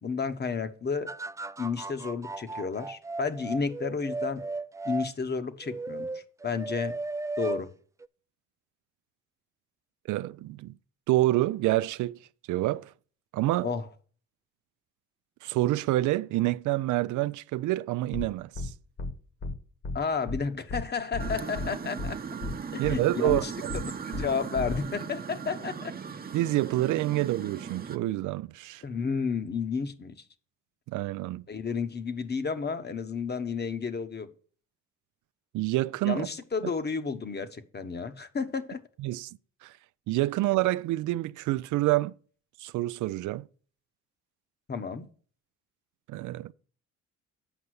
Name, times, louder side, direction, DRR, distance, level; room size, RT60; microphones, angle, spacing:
voice 1, 0.0-1.1 1.6-4.4 4.8-6.9 7.4-7.7 13.6-13.9 19.9-22.2 22.7-23.5 23.8-25.9 28.8-30.1 31.5-34.3 36.0-38.8 44.7-45.1, left 5 dB, 35° left, 1.1 m, -32 dB
sound 1, 1.1-5.1 5.6-7.6 8.0-8.1, right 3 dB, 10° right, 0.3 m, -35 dB
voice 2, 10.1-10.7 11.1-12.2 12.5-12.9 13.3-13.7 15.4-18.7 22.8-23.8 26.3-28.8 30.9-31.4 35.5-36.3 36.6-36.7 39.0-39.3 39.6-39.7 40.1-42.1 42.6-43.5 46.1-46.5, right 16 dB, 80° right, 0.4 m, -27 dB
sound 2, 18.1-18.3 18.5-18.7 19.0-19.1 19.4-19.5 19.8-20.0 20.3-20.4 20.7-20.8 21.1-21.7 22.0-22.1 22.4-22.5 22.8-23.0 23.3-23.4 23.7-23.8 24.1-24.3 24.5-24.8, left 2 dB, 50° left, 1.7 m, -33 dB
sound 3, 21.2-28.0, right 6 dB, 30° right, 0.8 m, -38 dB
8.0 x 5.5 x 6.3 m
cardioid pair, 90°, 30 cm